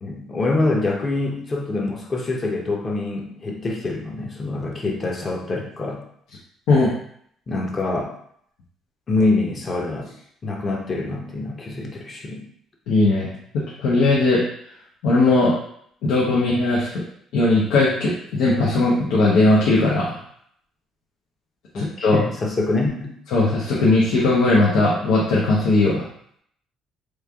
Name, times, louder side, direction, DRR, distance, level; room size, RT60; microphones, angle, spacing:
voice 1, 0.0-6.0 7.5-8.1 9.1-10.1 10.4-12.5 21.7-23.1, left 2 dB, 30° left, 0 dB, 0.8 m, -25 dB
voice 2, 12.9-14.4 15.0-15.5 16.0-16.9 17.3-20.2 21.7-22.2 23.3-26.0, left 2 dB, 85° left, -5 dB, 0.7 m, -18 dB
3.1 x 2.5 x 3.5 m, 0.66 s
cardioid pair, 115°, 0 cm